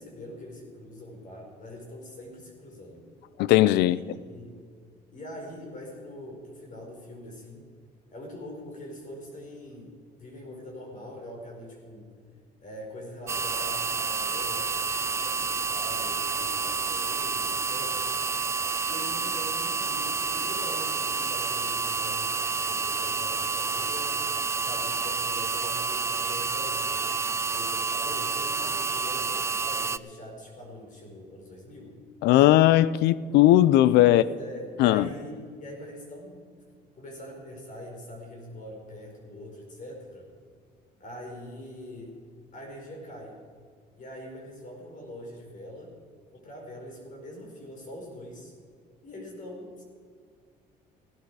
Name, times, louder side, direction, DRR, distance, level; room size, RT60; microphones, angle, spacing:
voice 1, 0.0-3.0 3.8-4.6 5.1-7.7 8.1-12.1 12.6-18.2 18.8-24.3 24.6-26.9 27.5-31.9 34.0-36.4 36.9-40.3 41.0-42.1 42.5-43.4 44.0-45.9 46.3-48.5 49.0-49.8, left 1 dB, 50° left, 4.7 m, -43 dB
voice 2, 3.4-4.0 32.2-34.2 34.8-35.1, left 14 dB, 85° left, 0.5 m, -18 dB
sound 1, 13.3-30.0, right 4 dB, 15° right, 0.3 m, -29 dB
16.5 x 11.5 x 4.8 m
cardioid pair, 110°, 17 cm